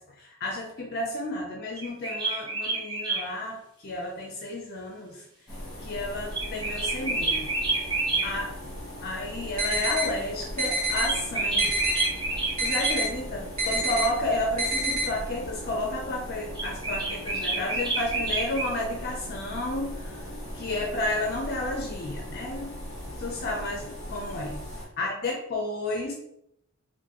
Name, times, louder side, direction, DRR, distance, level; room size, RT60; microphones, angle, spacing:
voice 1, 0.2-3.6 3.8-5.2 5.8-7.5 8.2-8.5 9.0-11.8 12.2-20.2 20.5-22.7 23.2-24.6 25.0-26.1, left 1 dB, 45° left, 0 dB, 0.4 m, -32 dB
sound 1, 1.8-3.2 6.3-8.3 11.0-13.0 16.5-18.7, right 3 dB, 20° right, 0.7 m, -28 dB
sound 2, 5.5-24.8, equal, 15° left, 1.0 m, -39 dB
sound 3, 9.6-10.1 10.6-11.1 11.6-12.1 12.6-13.1 13.6-14.1 14.6-15.1, right 2 dB, 40° right, 1.1 m, -26 dB
3.8 x 2.5 x 2.9 m, 0.78 s
head